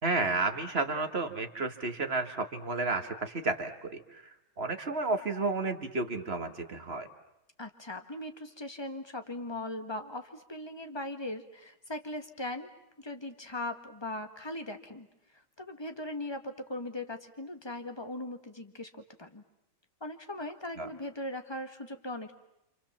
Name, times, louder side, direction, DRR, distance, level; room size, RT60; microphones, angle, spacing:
voice 1, 0.0-4.2 4.6-7.1 20.8-20.9, right 3 dB, 30° right, 6 dB, 1.8 m, -32 dB
voice 2, 7.6-12.7 13.0-15.1 15.3-19.4 20.0-22.3, left 1 dB, 15° left, 7 dB, 1.6 m, -39 dB
28.5 x 27.5 x 7.4 m, 0.84 s
omnidirectional pair, 2.2 m